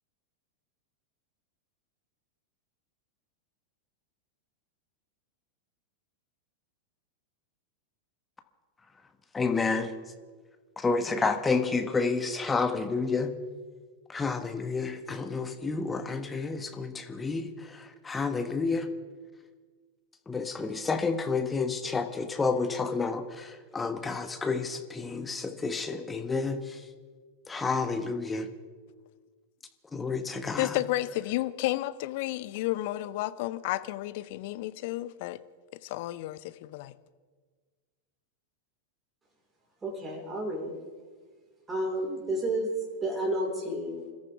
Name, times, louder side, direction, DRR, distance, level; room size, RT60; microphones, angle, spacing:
voice 1, 9.3-9.9 10.8-13.3 14.1-17.5 18.0-18.9 20.3-26.6 27.5-28.5 29.9-30.7, left 4 dB, 15° left, 7 dB, 1.3 m, -30 dB
voice 2, 30.6-35.4 35.8-36.9, left 16 dB, 50° left, 15 dB, 0.7 m, -32 dB
voice 3, 39.8-40.8 41.7-42.7 43.0-44.0, right 1 dB, 15° right, -1 dB, 4.5 m, -31 dB
28.0 x 13.5 x 3.5 m, 1.5 s
figure-of-eight pair, 90°, 0 cm